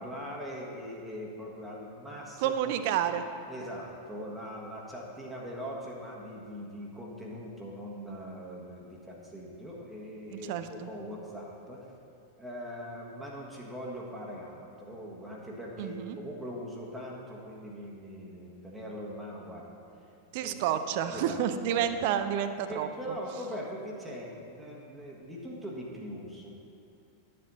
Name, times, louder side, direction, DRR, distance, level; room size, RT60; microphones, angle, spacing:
voice 1, 0.0-2.7 3.5-11.9 12.4-19.7 20.4-20.6 21.1-21.4 21.7-22.0 22.7-26.5, equal, 5° right, -3 dB, 1.5 m, -41 dB
voice 2, 2.4-3.3 10.3-10.9 15.8-16.2 20.3-23.2, right 9 dB, 50° right, 10 dB, 0.5 m, -30 dB
11.0 x 7.6 x 4.1 m, 2.6 s
figure-of-eight pair, 90°, 0 cm